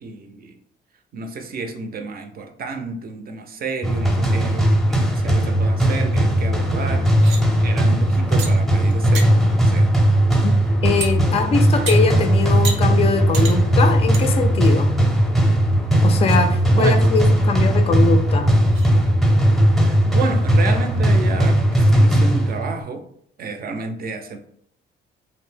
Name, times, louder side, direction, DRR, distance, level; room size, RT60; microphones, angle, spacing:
voice 1, 0.0-0.6 1.1-9.9 16.6-17.0 19.7-23.0 23.4-24.4, right 4 dB, 50° right, 6 dB, 0.5 m, -31 dB
sound 1, 3.8-22.8, right 1 dB, ahead, 0.7 m, -17 dB
sound 2, 7.1-7.4 8.4-8.5 8.9-9.3 11.0-11.1 11.9-12.0 12.6-12.8 13.3-13.6 14.1-14.3 14.7-14.8 15.4-15.5 16.0-16.4 18.0-18.1 18.7-18.9, right 5 dB, 85° right, 0.7 m, -30 dB
voice 2, 10.8-15.0 16.0-18.5, left 4 dB, 30° left, 6 dB, 0.3 m, -22 dB
2.6 x 2.0 x 3.2 m, 0.68 s
cardioid pair, 90°, 20 cm